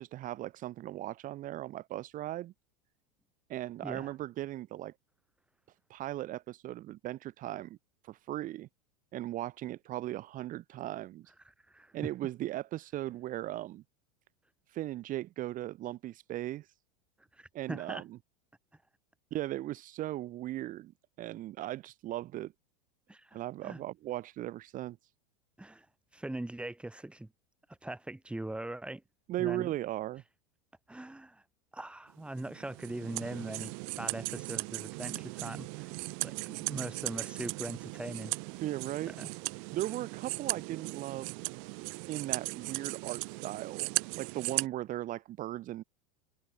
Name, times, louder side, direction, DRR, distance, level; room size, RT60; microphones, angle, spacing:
voice 1, 0.0-2.5 3.5-4.9 5.9-7.8 8.0-8.7 9.1-11.3 11.9-13.8 14.7-16.7 17.5-18.0 19.3-20.9 21.2-22.5 23.3-25.0 29.3-30.2 38.6-39.2 39.7-41.3 42.1-45.8, right 14 dB, 40° right, 1.6 m, -37 dB
voice 2, 11.7-12.1 17.4-18.0 23.1-23.8 25.6-25.9 26.1-27.3 27.8-29.0 29.4-29.7 30.9-31.4 31.7-35.9 36.2-38.3 39.0-39.3, right 1 dB, 5° right, 3.0 m, -41 dB
sound 1, 32.4-44.7, right 40 dB or more, 55° right, 1.7 m, -38 dB
hypercardioid pair, 95°, 21 cm